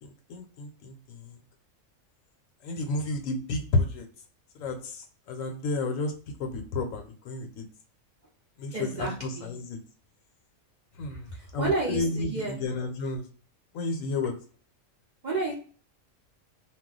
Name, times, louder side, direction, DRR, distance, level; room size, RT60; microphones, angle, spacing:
voice 1, 0.0-1.4 2.6-4.1 4.5-6.1 6.4-7.6 8.6-9.8 11.0-13.3 13.7-14.3, left 2 dB, 75° left, 5 dB, 1.0 m, -31 dB
voice 2, 8.7-9.5 11.3-12.6 15.2-15.5, right 3 dB, 50° right, -4 dB, 0.6 m, -31 dB
2.3 x 2.1 x 3.7 m, 0.42 s
omnidirectional pair, 1.4 m